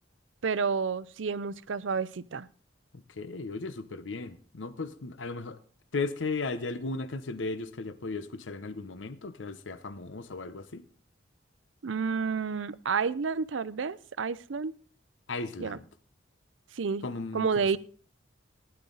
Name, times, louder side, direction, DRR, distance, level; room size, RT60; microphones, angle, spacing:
voice 1, 0.4-2.5 11.8-14.7 15.6-15.8 16.7-17.0 17.3-17.8, right 5 dB, 85° right, 0.6 m, -30 dB
voice 2, 2.9-5.6 5.9-10.8 15.3-15.8 17.0-17.8, left 3 dB, 80° left, 0.8 m, -36 dB
15.5 x 10.5 x 3.9 m
head